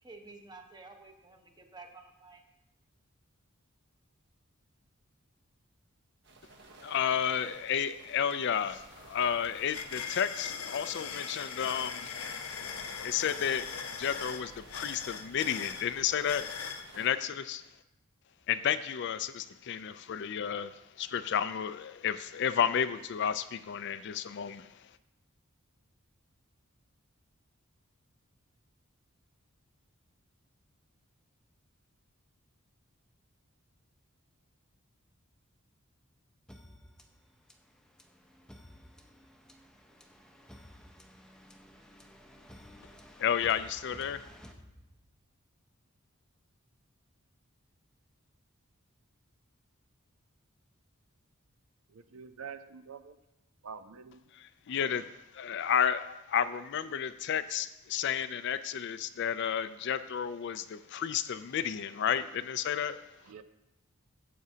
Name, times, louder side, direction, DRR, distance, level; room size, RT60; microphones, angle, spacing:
voice 1, 0.0-2.4, right 3 dB, 20° right, 3 dB, 1.0 m, -51 dB
sound 1, 6.2-17.1, right 2 dB, 55° right, 1.1 m, -55 dB
voice 2, 6.8-12.2 13.0-13.7 14.0-16.5 16.9-17.6 18.5-24.7 43.2-44.2 54.3-55.1 55.3-63.0, left 8 dB, 55° left, 13 dB, 0.4 m, -32 dB
sound 2, 8.3-8.4 8.7-16.9, left 6 dB, 80° left, 0.8 m, -40 dB
sound 3, 36.5-45.3, equal, 5° left, 0.6 m, -54 dB
voice 3, 51.9-53.2 53.6-54.2 63.2-63.4, right 6 dB, 75° right, 10 dB, 0.6 m, -46 dB
13.5 x 7.8 x 2.8 m, 0.96 s
head